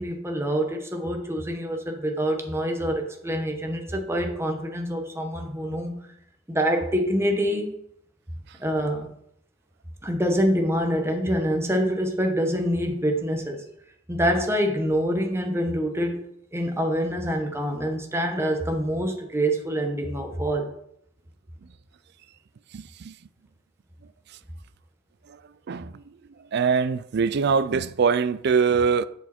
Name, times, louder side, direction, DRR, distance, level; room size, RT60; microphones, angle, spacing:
voice 1, 0.0-6.1 6.5-7.8 8.6-9.1 10.0-13.6 14.1-16.2 16.5-20.7, equal, 15° right, 1.1 m, -26 dB
voice 2, 22.7-23.1 25.7-26.0 26.5-29.1, right 5 dB, 55° right, 0.4 m, -23 dB
7.0 x 6.4 x 4.3 m
head